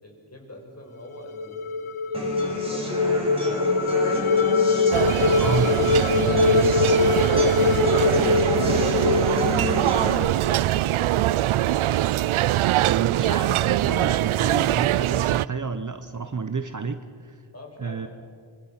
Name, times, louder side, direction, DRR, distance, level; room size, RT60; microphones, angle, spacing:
voice 1, 0.0-4.1 4.6-4.9 6.0-12.2 17.5-18.1, left 1 dB, 30° left, 1 dB, 6.4 m, -43 dB
sound 1, 1.2-10.4, left 4 dB, 75° left, 1.2 m, -23 dB
sound 2, 2.1-10.1, equal, 10° right, 5.8 m, -30 dB
sound 3, 4.9-15.5, right 14 dB, 75° right, 0.5 m, -23 dB
voice 2, 5.4-5.8 12.8-17.4 17.8-18.1, right 5 dB, 35° right, 9 dB, 1.1 m, -30 dB
25.5 x 24.5 x 6.0 m, 2.2 s
wide cardioid pair, 100°, 50 cm